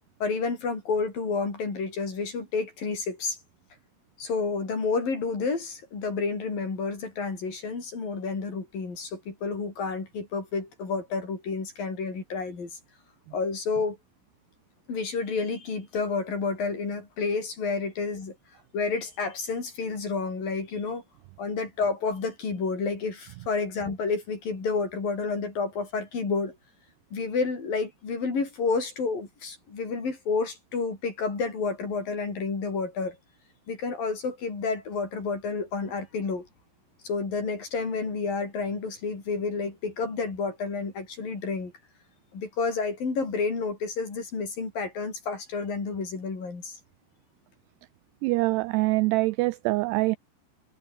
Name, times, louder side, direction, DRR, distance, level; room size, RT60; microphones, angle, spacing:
voice 1, 0.2-3.4 4.2-12.8 13.3-14.0 14.9-18.4 18.7-21.0 21.4-26.6 27.1-33.2 33.7-36.5 37.0-41.7 42.3-46.8, left 4 dB, 50° left, 7.9 m, -30 dB
voice 2, 48.2-50.2, right 22 dB, 85° right, 2.4 m, -24 dB
omnidirectional pair, 5.2 m